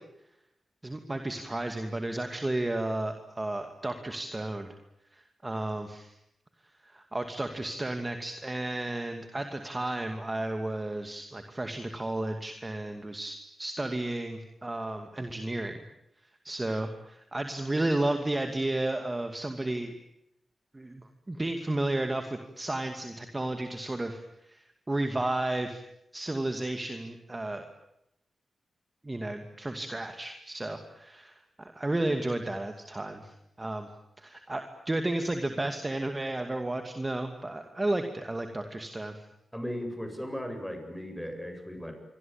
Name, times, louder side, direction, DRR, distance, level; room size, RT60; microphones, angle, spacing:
voice 1, 0.8-4.7 5.1-6.1 6.8-15.7 16.4-19.9 20.7-25.8 26.1-27.6 29.0-33.3 33.6-33.9 34.2-39.3, right 2 dB, 20° right, 6 dB, 2.5 m, -33 dB
voice 2, 39.5-41.9, equal, ahead, 5 dB, 7.8 m, -37 dB
27.5 x 24.0 x 9.0 m, 0.81 s
wide cardioid pair, 100°, 0 cm